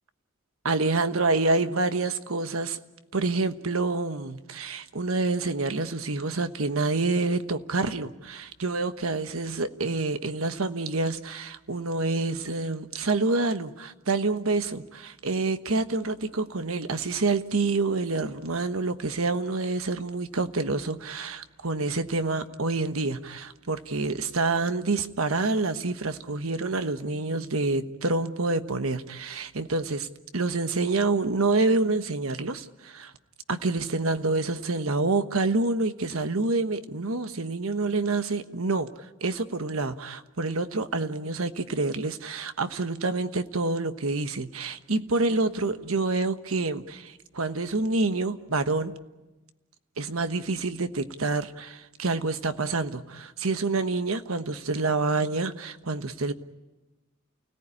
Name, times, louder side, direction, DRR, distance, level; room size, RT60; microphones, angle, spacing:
voice 1, 0.6-2.8 3.1-30.1 30.3-33.1 33.5-38.9 39.2-48.9 50.0-56.3, right 3 dB, 90° right, 10 dB, 1.3 m, -27 dB
29.5 x 18.0 x 10.0 m, 1.1 s
head